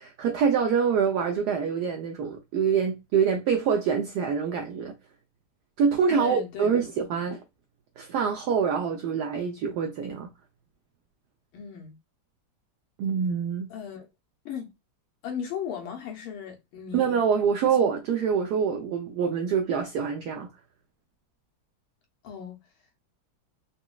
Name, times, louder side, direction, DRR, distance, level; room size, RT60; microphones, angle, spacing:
voice 1, 0.0-4.9 5.8-7.4 8.0-10.3 13.0-13.7 16.9-20.5, right 6 dB, 80° right, 0.9 m, -25 dB
voice 2, 6.1-6.9 11.5-12.0 13.7-14.1 14.4-14.7 15.2-17.2 17.6-17.8 22.2-22.6, left 8 dB, 85° left, 1.6 m, -37 dB
4.0 x 2.2 x 2.2 m
omnidirectional pair, 2.2 m